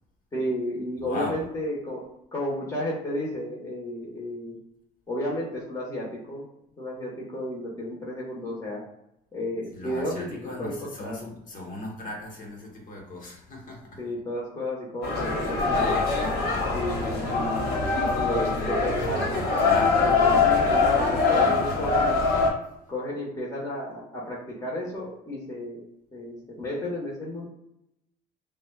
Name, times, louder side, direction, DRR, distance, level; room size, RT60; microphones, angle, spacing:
voice 1, 0.3-2.0 2.3-4.6 5.1-6.4 6.8-8.8 9.3-11.2 14.0-15.9 16.7-19.5 20.0-22.1 22.9-25.8 26.1-27.4, left 1 dB, 20° left, -4 dB, 1.3 m, -32 dB
voice 2, 1.0-1.4 9.7-14.0 15.8-16.4 19.6-20.5 21.3-21.6, left 1 dB, 50° left, 0 dB, 1.4 m, -38 dB
sound 1, 15.0-22.5, left 4 dB, 70° left, 1.2 m, -23 dB
5.8 x 2.3 x 2.4 m, 0.82 s
cardioid pair, 110°, 17 cm